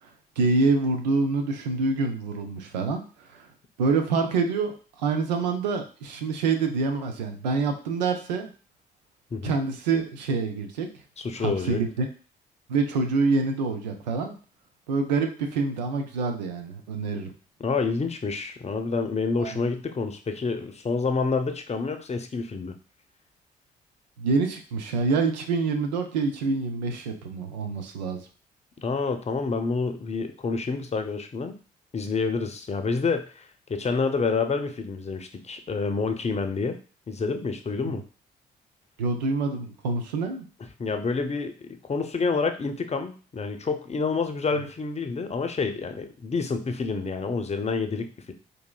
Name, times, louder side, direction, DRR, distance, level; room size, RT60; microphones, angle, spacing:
voice 1, 0.4-3.5 3.8-8.5 9.4-10.9 11.4-12.1 12.7-14.3 14.9-17.3 19.4-19.6 24.2-28.2 37.8-38.0 39.0-40.5, right 4 dB, 90° right, 5 dB, 0.4 m, -26 dB
voice 2, 11.2-11.8 17.6-22.7 28.8-31.6 31.9-36.8 37.1-38.0 40.8-48.3, left 4 dB, 30° left, 7 dB, 0.6 m, -28 dB
4.0 x 2.6 x 2.2 m, 0.38 s
hypercardioid pair, 40°, 21 cm